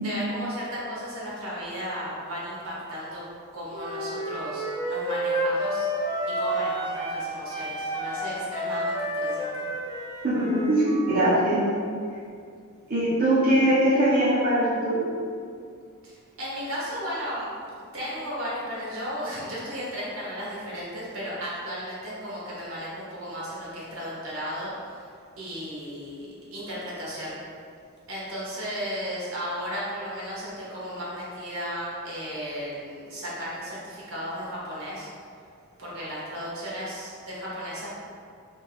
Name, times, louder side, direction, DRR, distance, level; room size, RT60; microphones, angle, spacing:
voice 1, 0.0-3.2 3.5-5.9 6.4-9.6 13.5-13.7 16.0-17.5 17.9-25.1 25.4-27.4 28.1-35.1 35.8-37.9, equal, 65° right, -7 dB, 1.4 m, -35 dB
Wind instrument woodwind instrument, 3.7-7.2 7.5-11.4, right 1 dB, 20° right, 0.8 m, -30 dB
voice 2, 10.2-11.6 12.9-15.1, right 1 dB, 40° right, -12 dB, 1.0 m, -22 dB
3.5 x 3.1 x 4.7 m, 2.4 s
head